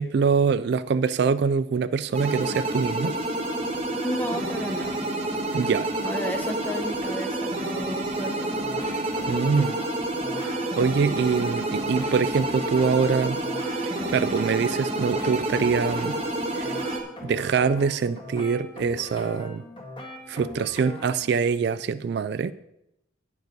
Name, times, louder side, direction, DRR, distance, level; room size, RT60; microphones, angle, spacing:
voice 1, 0.0-3.1 5.5-5.9 9.3-9.8 10.4-13.4 13.8-16.2 16.5-16.8 17.2-19.6 20.3-22.5, right 5 dB, 55° right, 15 dB, 0.3 m, -24 dB
sound 1, 2.1-17.0, right 1 dB, 30° right, 1.2 m, -29 dB
voice 2, 4.0-5.0 5.5-5.6 6.0-8.7, equal, 10° left, 7 dB, 0.8 m, -33 dB
sound 2, 8.2-21.3, left 1 dB, 25° left, 1.8 m, -40 dB
9.2 x 8.1 x 5.2 m, 0.84 s
head